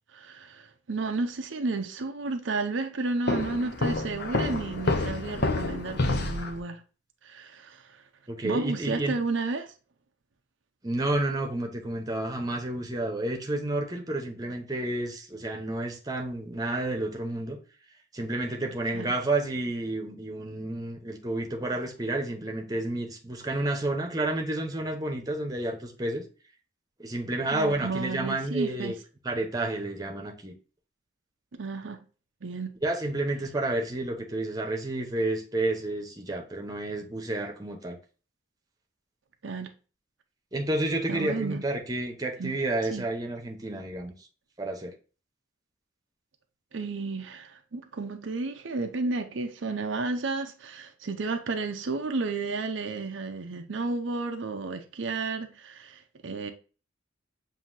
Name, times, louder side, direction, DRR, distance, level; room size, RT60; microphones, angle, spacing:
voice 1, 0.1-6.8 7.2-8.0 8.4-9.7 18.9-19.1 27.5-28.9 31.5-32.0 32.4-32.7 39.4-39.7 41.1-41.6 42.4-42.5 42.9-43.0 46.7-56.5, right 3 dB, 85° right, 0.6 m, -32 dB
Walk footsteps, 3.3-6.6, left 2 dB, 60° left, 0.7 m, -28 dB
voice 2, 8.3-9.1 10.8-17.6 18.1-26.2 27.0-28.9 29.2-30.5 32.8-38.0 40.5-44.1 44.6-44.9, right 2 dB, 20° right, 0.9 m, -30 dB
7.4 x 2.8 x 2.6 m
head